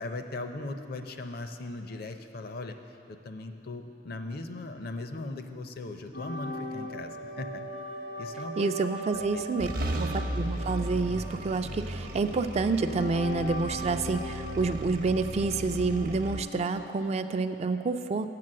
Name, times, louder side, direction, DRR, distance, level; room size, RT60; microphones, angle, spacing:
voice 1, 0.0-2.8 3.1-7.6 8.2-8.8 9.1-9.5, left 2 dB, 60° left, 7 dB, 0.6 m, -38 dB
sound 1, 6.1-17.0, equal, 80° left, 1.2 m, -40 dB
voice 2, 8.6-18.3, right 4 dB, 35° right, 9 dB, 0.3 m, -29 dB
sound 2, 9.1-9.3 9.6-16.4, right 1 dB, 55° right, 0.7 m, -35 dB
7.6 x 6.1 x 7.6 m, 2.6 s
head